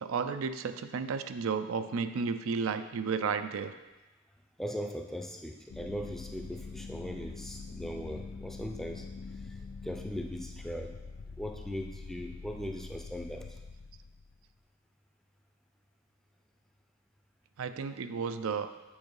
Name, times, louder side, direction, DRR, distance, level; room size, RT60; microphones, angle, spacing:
voice 1, 0.0-3.7 17.6-18.7, right 5 dB, 80° right, 9 dB, 0.4 m, -33 dB
voice 2, 4.6-9.1 9.8-10.9 11.4-13.5, equal, ahead, 3 dB, 0.5 m, -39 dB
sound 1, 5.7-14.4, left 4 dB, 65° left, 0.4 m, -44 dB
7.4 x 4.6 x 4.7 m, 1.1 s
head